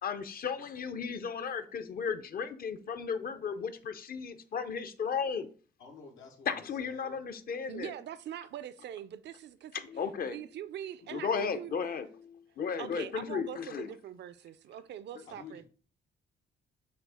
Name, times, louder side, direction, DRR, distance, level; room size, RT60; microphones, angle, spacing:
voice 1, 0.0-5.5 6.5-7.9 9.7-10.4 11.1-13.9, left 6 dB, 50° left, 0.6 m, -35 dB
voice 2, 5.8-7.2 15.3-15.7, left 4 dB, 90° left, 1.1 m, -51 dB
voice 3, 7.7-9.8 10.3-11.9 12.8-15.7, right 10 dB, 65° right, 0.4 m, -43 dB
6.2 x 2.4 x 3.4 m
cardioid pair, 90°, 20 cm